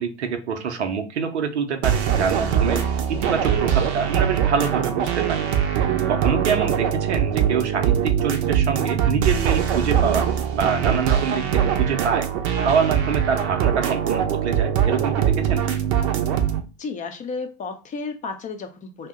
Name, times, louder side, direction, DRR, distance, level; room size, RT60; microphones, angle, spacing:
voice 1, 0.0-5.5 6.1-10.3 10.5-12.3 12.6-15.6, right 6 dB, 85° right, 0.7 m, -25 dB
sound 1, 1.8-16.6, right 9 dB, 45° right, 0.6 m, -22 dB
voice 2, 16.8-19.1, left 4 dB, 25° left, 0.5 m, -32 dB
2.7 x 2.1 x 3.5 m
hypercardioid pair, 90°, 33 cm